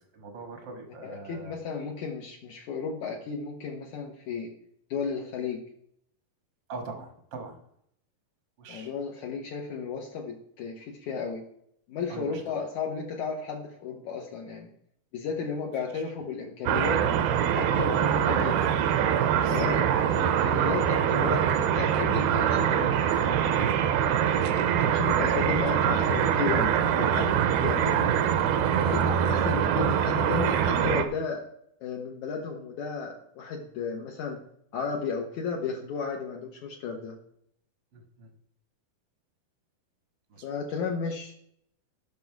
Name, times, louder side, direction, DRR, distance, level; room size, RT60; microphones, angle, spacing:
voice 1, 0.1-1.5 6.7-7.6 8.6-8.9 12.1-12.4 18.5-18.8 19.4-20.0 23.6-23.8 25.3-25.5 37.9-38.3 40.3-40.4, right 3 dB, 55° right, 5 dB, 1.3 m, -42 dB
voice 2, 1.0-4.5 4.9-5.6 8.7-11.4 11.9-14.7 15.1-17.0 17.6-18.5 19.5-19.8 20.1-23.0 24.8-27.4 27.6-28.2 28.8-31.4 31.8-34.4 34.7-37.2 40.4-41.3, left 5 dB, 65° left, 0 dB, 2.1 m, -33 dB
sound 1, 16.7-31.0, right 9 dB, 85° right, 2.7 m, -24 dB
15.0 x 6.3 x 4.6 m, 0.70 s
omnidirectional pair, 4.4 m